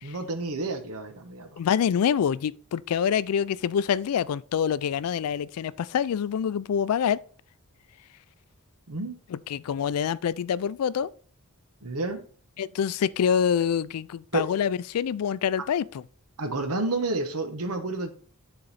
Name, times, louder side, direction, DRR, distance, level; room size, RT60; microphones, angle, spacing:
voice 1, 0.0-1.6 8.9-9.2 11.8-12.2 14.3-14.4 15.6-15.7 16.4-18.1, right 2 dB, 80° right, 1.1 m, -30 dB
voice 2, 1.6-7.2 9.3-11.1 12.6-16.0, left 8 dB, 80° left, 0.3 m, -26 dB
9.9 x 4.0 x 4.0 m
head